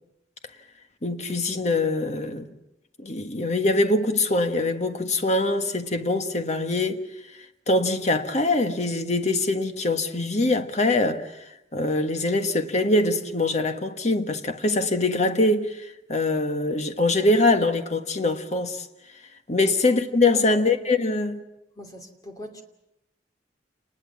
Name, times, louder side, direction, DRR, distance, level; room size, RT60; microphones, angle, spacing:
voice 1, 1.0-2.5 3.0-7.0 7.7-18.9 19.5-21.4, left 2 dB, 40° left, 1.6 m, -23 dB
voice 2, 20.3-20.6 21.7-22.6, left 1 dB, 20° left, 2.8 m, -39 dB
28.5 x 20.5 x 7.3 m
head